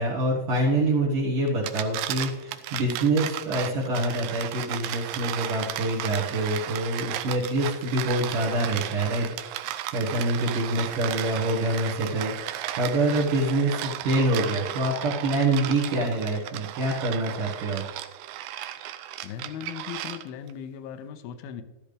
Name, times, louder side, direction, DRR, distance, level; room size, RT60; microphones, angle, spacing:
voice 1, 0.0-9.3 9.9-17.8, right 1 dB, 60° right, -5 dB, 2.7 m, -26 dB
sound 1, 1.5-20.5, right 13 dB, 80° right, 2.4 m, -35 dB
voice 2, 19.2-21.6, left 8 dB, 80° left, 11 dB, 2.4 m, -38 dB
13.0 x 12.0 x 3.4 m, 1.1 s
omnidirectional pair, 4.7 m